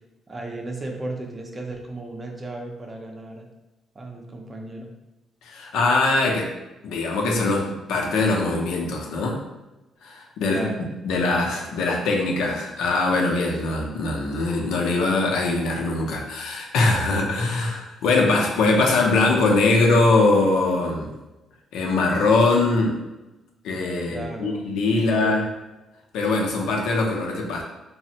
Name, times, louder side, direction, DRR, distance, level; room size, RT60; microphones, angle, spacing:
voice 1, 0.3-3.5 3.9-4.9 10.5-10.9 24.0-24.6 24.9-25.4, right 2 dB, 25° right, 1 dB, 0.5 m, -35 dB
voice 2, 5.4-6.5 6.8-9.4 10.0-21.1 21.7-23.0 23.6-25.4 26.1-27.6, left 3 dB, 90° left, -1 dB, 0.5 m, -22 dB
3.2 x 2.0 x 2.7 m, 1.0 s
cardioid pair, 90°, 0 cm